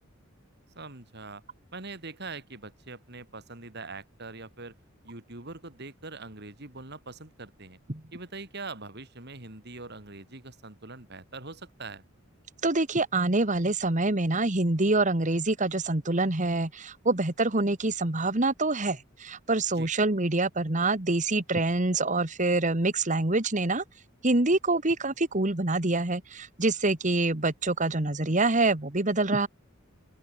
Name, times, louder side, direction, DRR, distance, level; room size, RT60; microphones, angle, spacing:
voice 1, 0.7-1.4 1.7-4.7 5.0-7.8 8.1-12.0 19.8-19.9, right 3 dB, 50° right, 3.3 m, -42 dB
voice 2, 12.6-23.8 24.2-29.5, right 2 dB, 35° right, 1.7 m, -26 dB
open air
head